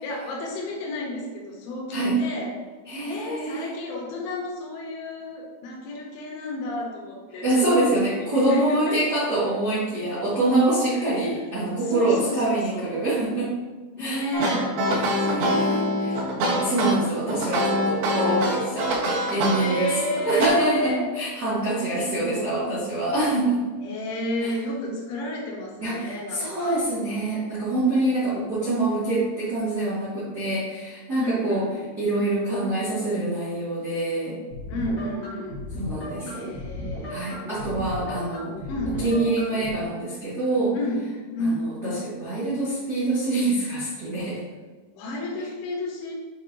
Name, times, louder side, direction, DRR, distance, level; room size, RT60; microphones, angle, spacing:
voice 1, 0.0-2.6 3.0-7.9 8.2-9.0 10.9-11.1 11.8-13.0 14.0-14.8 15.2-17.0 19.6-21.1 21.7-22.7 23.8-26.9 31.2-31.8 34.7-35.6 36.2-37.4 38.7-39.2 40.7-41.0 41.3-41.7 44.9-46.1, left 1 dB, 75° left, -1 dB, 3.7 m, -32 dB
voice 2, 2.8-3.7 7.4-13.5 14.0-14.3 14.9-15.8 16.6-19.9 20.2-23.6 24.4-24.5 25.8-31.6 32.0-34.4 35.7-36.5 37.1-38.6 39.0-40.8 41.4-44.4, right 2 dB, 90° right, -11 dB, 0.8 m, -25 dB
sound 1, 14.3-20.5, equal, 70° right, 3.6 m, -24 dB
sound 2, 34.5-39.7, left 1 dB, 50° left, 1.3 m, -35 dB
8.3 x 5.8 x 2.9 m, 1.4 s
omnidirectional pair, 5.7 m